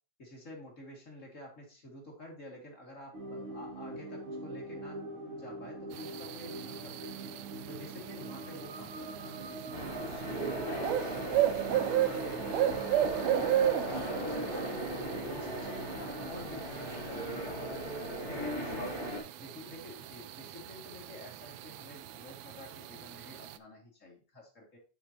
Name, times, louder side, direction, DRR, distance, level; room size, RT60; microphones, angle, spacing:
voice 1, 0.2-7.2 7.7-11.5 11.8-15.0 15.2-17.8 18.2-18.9 19.4-24.8, left 1 dB, 30° left, -1 dB, 2.2 m, -49 dB
sound 1, 3.1-16.6, right 3 dB, 50° right, 2.5 m, -43 dB
sound 2, 5.9-23.6, right 11 dB, 80° right, 1.7 m, -35 dB
sound 3, 9.7-19.2, right 1 dB, 25° right, 1.9 m, -38 dB
7.5 x 7.0 x 2.9 m, 0.36 s
omnidirectional pair, 3.4 m